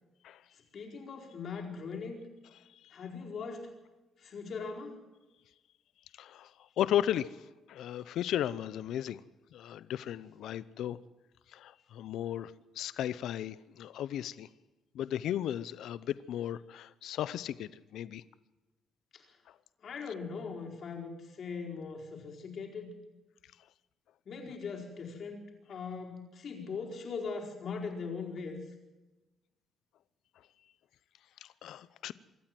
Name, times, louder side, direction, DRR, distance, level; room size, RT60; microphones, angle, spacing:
voice 1, 0.7-2.2 2.9-3.7 4.2-5.0 19.1-19.2 19.8-23.0 24.2-28.6, left 5 dB, 45° left, 1 dB, 4.6 m, -40 dB
voice 2, 6.2-7.4 7.7-9.2 9.5-11.0 11.5-14.5 14.9-18.2 31.4-32.1, left 11 dB, 70° left, 17 dB, 0.8 m, -35 dB
25.5 x 13.5 x 7.8 m, 1.1 s
cardioid pair, 165°, 0 cm